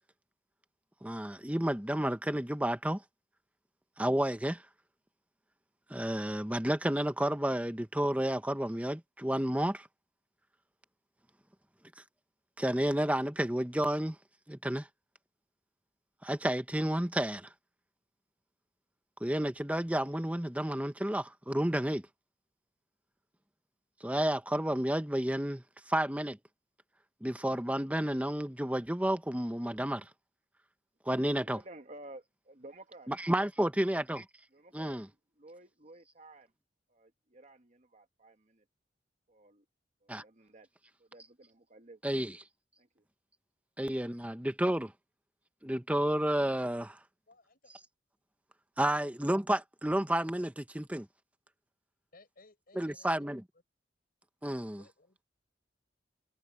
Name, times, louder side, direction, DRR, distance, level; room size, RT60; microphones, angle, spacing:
voice 1, 1.0-3.0 4.0-4.6 5.9-9.9 12.6-14.2 14.5-14.9 16.2-17.5 19.2-22.0 24.0-26.4 27.2-30.0 31.1-31.6 33.1-34.2 34.7-35.1 40.1-40.2 42.0-42.4 43.8-44.9 45.6-47.0 48.8-51.1 52.8-53.4 54.4-54.8, right 1 dB, 10° right, 1.0 m, -31 dB
voice 2, 31.5-33.1 34.5-35.1 35.4-36.5 36.9-38.6 39.3-39.6 40.0-40.7 41.0-42.0 42.8-43.0, right 1 dB, 40° right, 1.6 m, -53 dB
voice 3, 47.3-47.7 48.9-49.1 52.1-53.3 54.8-55.4, left 2 dB, 55° left, 5.4 m, -60 dB
head